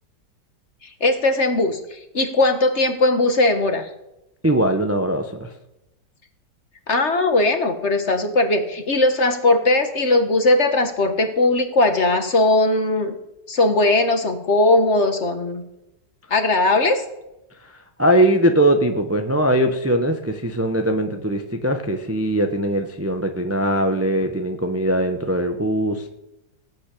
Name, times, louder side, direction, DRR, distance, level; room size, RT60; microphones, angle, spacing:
voice 1, 0.8-3.9 6.9-13.2 13.5-15.6 16.3-17.0, left 2 dB, 45° left, 8 dB, 1.4 m, -19 dB
voice 2, 4.4-5.5 18.0-26.1, right 1 dB, 10° right, 5 dB, 0.7 m, -20 dB
18.0 x 6.3 x 8.5 m, 0.92 s
omnidirectional pair, 1.9 m